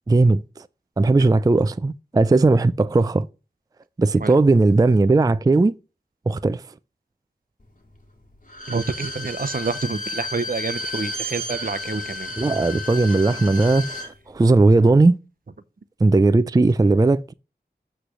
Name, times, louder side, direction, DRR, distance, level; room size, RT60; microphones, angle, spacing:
voice 1, 0.1-0.4 1.0-3.3 4.0-5.7 6.3-6.6 12.4-15.2 16.0-17.3, right 3 dB, 20° right, 0.3 m, -17 dB
Bowed string instrument, 8.5-14.1 14.4-14.5, left 1 dB, 50° left, 1.7 m, -32 dB
voice 2, 8.7-12.3, right 4 dB, 55° right, 0.6 m, -28 dB
8.2 x 3.3 x 6.3 m
wide cardioid pair, 45°, 17 cm